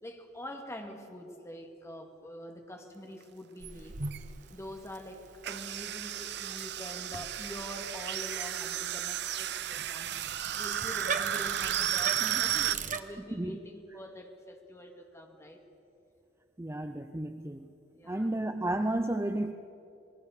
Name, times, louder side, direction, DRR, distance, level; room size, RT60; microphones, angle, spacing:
voice 1, 0.0-4.0 4.5-15.6 17.9-18.3, equal, 15° left, 3 dB, 2.3 m, -45 dB
Bicycle, 3.6-13.0, right 6 dB, 45° right, 1.1 m, -41 dB
sound 1, 3.6-3.7 4.0-4.2 5.4-12.7, right 11 dB, 60° right, 0.7 m, -33 dB
voice 2, 16.6-17.7 18.1-19.5, right 1 dB, 15° right, 8 dB, 0.6 m, -32 dB
26.5 x 20.5 x 6.7 m, 2.8 s
head